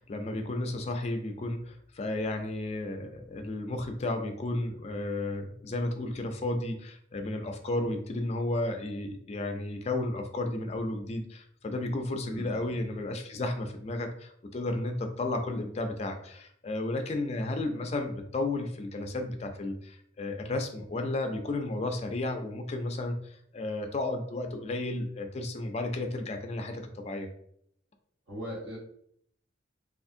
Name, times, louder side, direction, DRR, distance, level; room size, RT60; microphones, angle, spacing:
voice 1, 0.0-27.3, left 2 dB, 35° left, 5 dB, 0.4 m, -33 dB
voice 2, 12.3-12.8 28.3-28.8, equal, 65° right, -4 dB, 1.2 m, -40 dB
3.4 x 2.4 x 2.6 m, 0.67 s
head